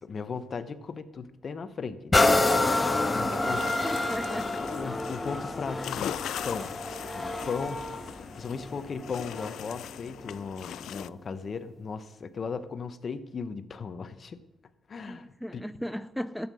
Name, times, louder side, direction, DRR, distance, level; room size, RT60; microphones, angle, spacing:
voice 1, 0.0-3.8 4.6-6.7 7.1-14.4 14.9-15.6, left 5 dB, 45° left, 11 dB, 1.0 m, -37 dB
sound 1, 2.1-9.7 10.3-10.4, left 2 dB, 20° left, 0.8 m, -28 dB
sound 2, 2.2-11.1, left 11 dB, 75° left, 0.4 m, -41 dB
voice 2, 3.2-3.6 3.8-4.6 15.1-16.5, equal, ahead, 11 dB, 0.4 m, -37 dB
13.0 x 8.7 x 6.3 m, 1.0 s
cardioid pair, 90°, 0 cm